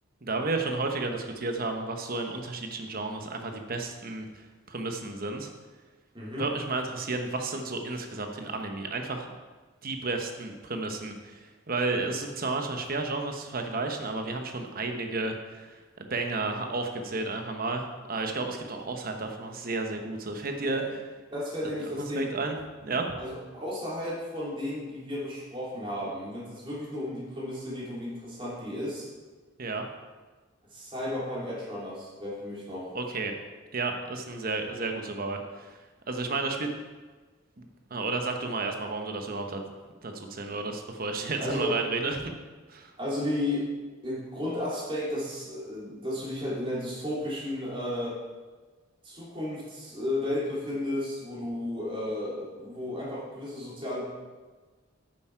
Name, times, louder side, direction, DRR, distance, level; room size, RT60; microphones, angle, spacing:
voice 1, 0.2-5.5 6.4-9.3 9.8-20.8 21.6-22.6 22.8-23.1 29.6-29.8 32.9-33.3 33.7-35.8 36.1-36.7 37.6-39.6 40.0-42.3 42.7-42.9, right 3 dB, 45° right, 4 dB, 1.0 m, -32 dB
voice 2, 21.3-22.3 23.2-29.1 30.7-32.9 41.4-41.8 43.0-43.7 44.0-48.2 49.0-54.0, left 1 dB, 25° right, -6 dB, 3.0 m, -33 dB
8.9 x 7.5 x 4.6 m, 1.3 s
head